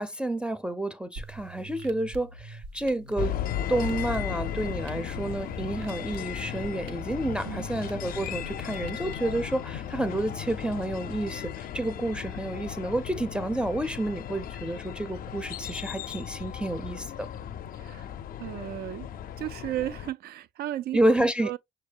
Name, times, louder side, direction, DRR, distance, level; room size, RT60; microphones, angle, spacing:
voice 1, 0.0-3.4 3.7-17.3 20.9-21.5, right 1 dB, 5° right, 0.5 m, -29 dB
sound 1, 1.1-9.1, right 3 dB, 80° right, 0.7 m, -44 dB
sound 2, 3.2-20.1, left 10 dB, 55° left, 0.4 m, -36 dB
voice 2, 17.8-18.1 18.4-19.1 19.4-21.6, right 13 dB, 60° right, 0.4 m, -34 dB
6.2 x 2.3 x 3.3 m
hypercardioid pair, 50°, 18 cm